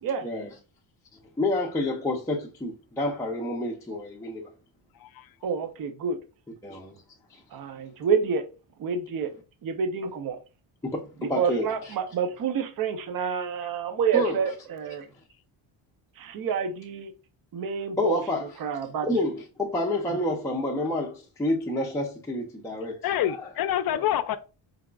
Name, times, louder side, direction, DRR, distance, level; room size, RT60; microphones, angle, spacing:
voice 1, 0.2-0.5 1.4-4.5 6.6-6.9 7.3-7.4 10.8-11.9 14.1-14.4 18.0-18.6 19.0-23.5 23.9-24.0, left 1 dB, 5° left, 0.5 m, -29 dB
voice 2, 5.4-6.2 7.5-8.4 8.8-9.3 9.6-10.4 11.4-15.1 16.2-17.1 17.5-18.2 18.6-19.1, right 6 dB, 50° right, 0.7 m, -28 dB
voice 3, 23.0-24.4, left 11 dB, 50° left, 0.5 m, -27 dB
4.7 x 3.6 x 2.3 m
cardioid pair, 135°, 46 cm